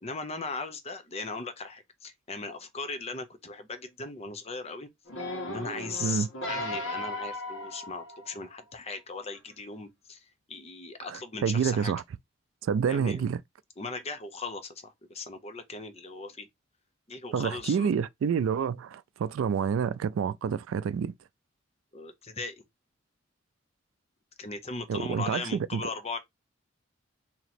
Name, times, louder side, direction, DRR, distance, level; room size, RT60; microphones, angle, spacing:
voice 1, 0.0-4.9 5.5-11.9 12.9-13.2 13.8-16.5 17.1-18.1 21.9-22.6 24.4-26.2, left 3 dB, 30° left, 0.7 m, -38 dB
sound 1, 5.1-8.6 9.2-9.3, left 1 dB, 80° left, 1.3 m, -36 dB
voice 2, 11.1-12.0 12.6-13.4 17.3-21.1 24.9-25.9, right 7 dB, 85° right, 0.3 m, -28 dB
3.0 x 2.8 x 4.2 m
head